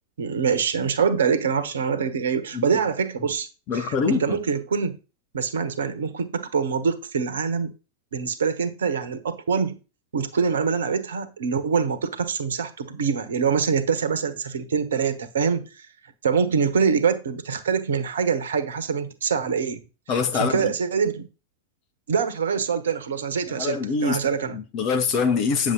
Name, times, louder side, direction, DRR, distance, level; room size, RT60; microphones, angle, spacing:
voice 1, 0.2-3.5 3.7-5.0 5.3-7.7 8.1-9.8 10.1-15.7 16.2-19.8 20.3-21.3 22.1-24.6, right 6 dB, 65° right, 1.3 m, -24 dB
voice 2, 3.7-4.4 20.1-20.7 23.5-24.2 24.5-25.7, left 5 dB, 35° left, 1.8 m, -24 dB
9.5 x 7.0 x 4.1 m
figure-of-eight pair, 90°, 0 cm